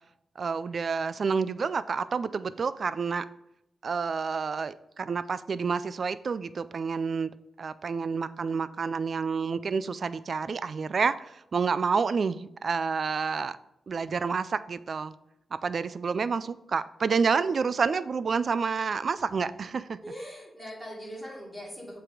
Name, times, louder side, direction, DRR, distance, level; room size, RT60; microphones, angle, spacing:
voice 1, 0.4-3.3 3.8-7.3 7.6-13.6 13.9-15.1 15.5-20.0, right 5 dB, 50° right, 15 dB, 0.3 m, -29 dB
voice 2, 20.0-22.0, equal, 5° right, -4 dB, 2.7 m, -41 dB
7.8 x 4.8 x 3.8 m, 0.82 s
cardioid pair, 105°, 0 cm